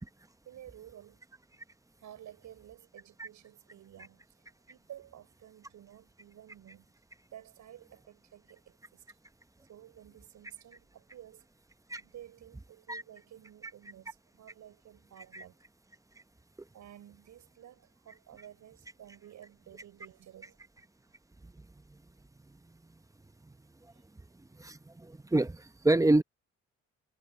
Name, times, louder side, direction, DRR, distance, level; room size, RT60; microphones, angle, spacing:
voice 1, 0.4-1.2 2.0-6.9 7.3-9.2 9.5-11.5 12.0-15.6 16.7-20.8 23.9-24.1, right 11 dB, 70° right, 6.2 m, -53 dB
voice 2, 24.6-26.2, right 2 dB, 10° right, 0.8 m, -27 dB
cardioid pair, 90°, 30 cm